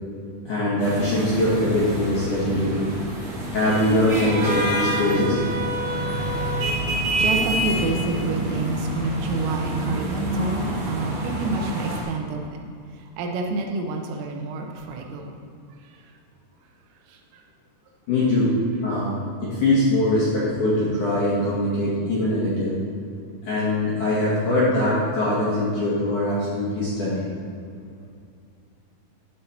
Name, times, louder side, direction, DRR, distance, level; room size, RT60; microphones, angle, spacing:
voice 1, 0.5-2.9 3.5-5.4 18.1-18.5 18.8-22.8 23.4-27.3, left 1 dB, 60° left, -9 dB, 2.2 m, -22 dB
sound 1, 0.8-12.0, right 1 dB, 50° right, 2.0 m, -27 dB
voice 2, 7.2-12.6 12.9-15.4 15.7-16.1 17.1-17.4 18.9-19.0, right 3 dB, 85° right, 2 dB, 3.6 m, -29 dB
12.0 x 5.6 x 4.4 m, 2.4 s
omnidirectional pair, 5.9 m